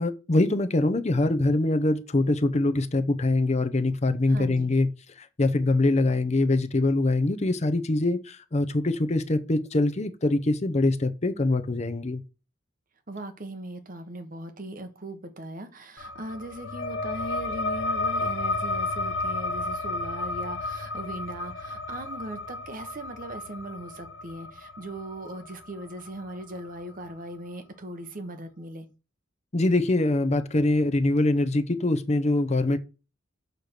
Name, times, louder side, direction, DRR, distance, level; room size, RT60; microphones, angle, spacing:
voice 1, 0.0-4.9 5.2-12.2 29.5-32.8, left 2 dB, 35° left, 0.7 m, -24 dB
voice 2, 4.3-4.7 13.1-28.9, right 1 dB, 45° right, 1.2 m, -39 dB
sound 1, 16.0-27.1, left 2 dB, 80° left, 1.2 m, -32 dB
6.6 x 4.4 x 6.6 m
head